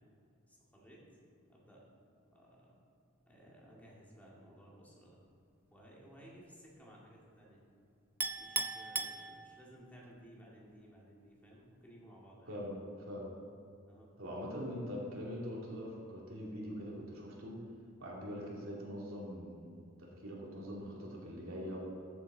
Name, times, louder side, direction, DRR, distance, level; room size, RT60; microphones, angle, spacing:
voice 1, 0.5-1.0 1.5-1.8 2.3-2.8 3.3-5.2 5.7-7.6 8.4-12.6 13.9-14.1, equal, 10° left, -4 dB, 2.2 m, -57 dB
Chink clink, 8.2-9.9, right 3 dB, 10° right, 0.4 m, -38 dB
voice 2, 12.5-13.3 14.2-17.5 18.0-21.8, equal, 80° right, -4 dB, 2.7 m, -43 dB
13.5 x 8.0 x 4.0 m, 2.6 s
head